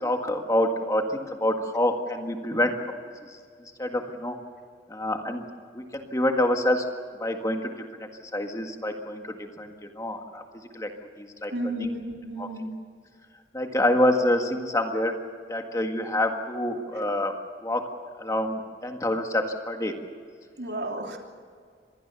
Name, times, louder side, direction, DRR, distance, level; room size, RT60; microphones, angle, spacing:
voice 1, 0.0-2.7 3.8-4.4 4.9-5.4 5.7-6.9 7.2-10.4 10.7-10.9 11.2-11.5 11.8-11.9 12.4-12.5 13.5-15.1 15.5-17.3 17.6-17.8 18.2-20.0, left 1 dB, 20° left, 4 dB, 1.8 m, -27 dB
voice 2, 11.5-12.7 20.6-21.2, right 1 dB, 70° right, 2 dB, 3.3 m, -32 dB
25.5 x 20.5 x 7.0 m, 2.1 s
head